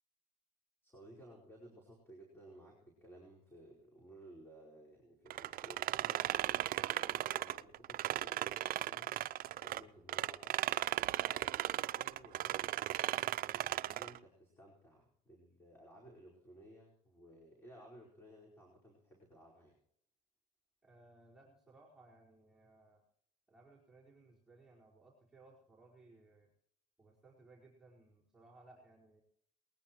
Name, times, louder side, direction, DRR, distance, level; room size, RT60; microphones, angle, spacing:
voice 1, 0.8-10.6 11.1-12.7 13.0-19.8, right 1 dB, 15° left, -4 dB, 4.9 m, -57 dB
sound 1, 5.3-9.8 10.1-14.2, right 14 dB, 60° right, 0.5 m, -36 dB
voice 2, 20.8-23.0 23.5-26.5 27.0-29.2, right 2 dB, 5° right, -8 dB, 4.7 m, -62 dB
20.5 x 20.0 x 3.1 m, 0.67 s
cardioid pair, 110°, 17 cm